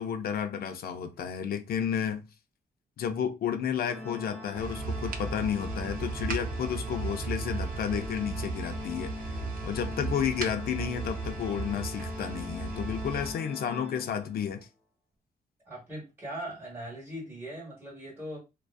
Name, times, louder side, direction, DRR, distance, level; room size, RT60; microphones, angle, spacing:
voice 1, 0.0-2.3 3.0-9.1 9.6-14.7, left 8 dB, 65° left, 0.4 m, -32 dB
Organ, 3.8-14.5, left 2 dB, 10° left, 0.5 m, -42 dB
sound 1, 4.6-13.3, right 3 dB, 60° right, 0.5 m, -36 dB
voice 2, 15.6-18.4, right 1 dB, 15° right, 1.2 m, -40 dB
2.5 x 2.3 x 2.3 m
cardioid pair, 130°, 17 cm